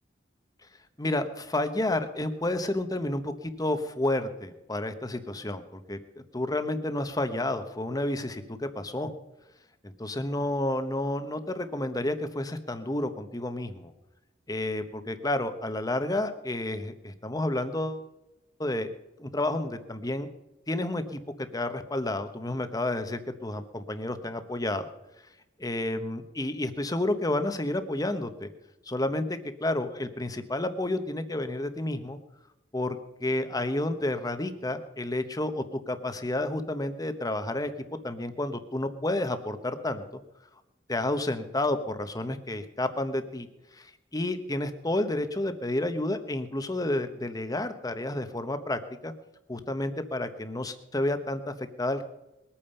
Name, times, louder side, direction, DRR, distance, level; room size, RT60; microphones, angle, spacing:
voice 1, 1.0-6.0 6.3-9.1 9.8-13.9 14.5-18.0 18.6-18.9 19.2-20.3 20.7-21.2 21.5-24.9 25.6-28.5 28.9-32.2 32.7-37.7 38.0-40.0 40.9-43.5 43.7-43.9 44.1-49.1 49.5-52.0, left 1 dB, 20° left, 9 dB, 1.0 m, -30 dB
21.5 x 8.8 x 5.6 m, 0.94 s
head